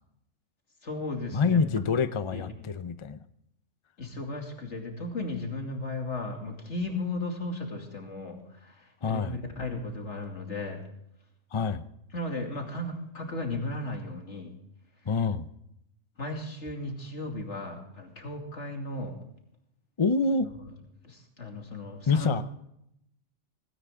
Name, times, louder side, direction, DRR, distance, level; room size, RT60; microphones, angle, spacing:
voice 1, 0.8-1.6 2.3-2.4 4.0-10.8 12.1-14.5 16.2-19.2 20.4-20.7 21.0-22.3, left 2 dB, 65° left, 2 dB, 3.0 m, -35 dB
voice 2, 1.3-3.2 9.0-9.3 11.5-11.8 15.1-15.5 20.0-20.5 22.1-22.4, left 4 dB, 35° left, 12 dB, 0.5 m, -26 dB
18.5 x 17.0 x 3.7 m, 0.77 s
omnidirectional pair, 1.3 m